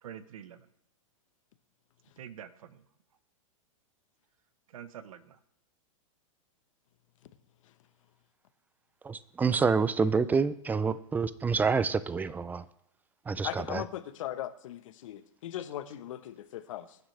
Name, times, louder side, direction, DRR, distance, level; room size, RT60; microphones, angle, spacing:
voice 1, 0.0-0.7 2.2-2.8 4.7-5.4, right 9 dB, 80° right, 1.2 m, -46 dB
voice 2, 9.0-12.6 13.3-13.8, right 5 dB, 10° right, 0.5 m, -27 dB
voice 3, 13.4-17.0, left 12 dB, 70° left, 1.2 m, -39 dB
23.5 x 9.9 x 3.4 m
hypercardioid pair, 135°, 17 cm